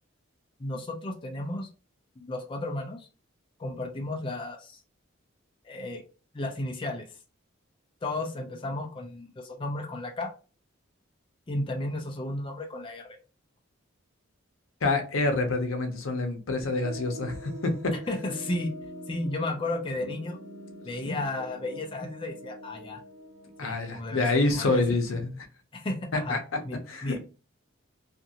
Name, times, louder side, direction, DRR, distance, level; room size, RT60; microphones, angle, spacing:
voice 1, 0.6-1.7 2.2-3.1 3.6-4.8 5.6-6.0 6.3-7.1 8.0-10.3 11.5-13.2 17.9-18.7 19.1-20.4 20.8-23.0 23.6-24.8 25.7-27.2, left 2 dB, 25° left, 0.4 m, -33 dB
voice 2, 14.8-18.0 23.6-25.5 26.1-26.4 26.9-27.2, left 2 dB, 80° left, 0.7 m, -27 dB
sound 1, 16.7-23.9, equal, 85° right, 0.9 m, -44 dB
2.6 x 2.5 x 2.7 m
head